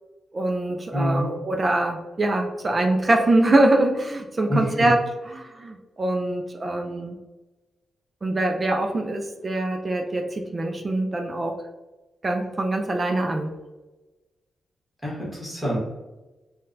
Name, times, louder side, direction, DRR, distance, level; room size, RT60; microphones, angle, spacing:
voice 1, 0.3-7.2 8.2-11.5 12.2-13.5, right 2 dB, 25° right, 3 dB, 0.3 m, -23 dB
voice 2, 0.9-1.3 4.5-4.9 15.0-15.8, equal, 5° left, -6 dB, 1.2 m, -26 dB
3.8 x 2.2 x 2.5 m, 1.1 s
wide cardioid pair, 160°, 0 cm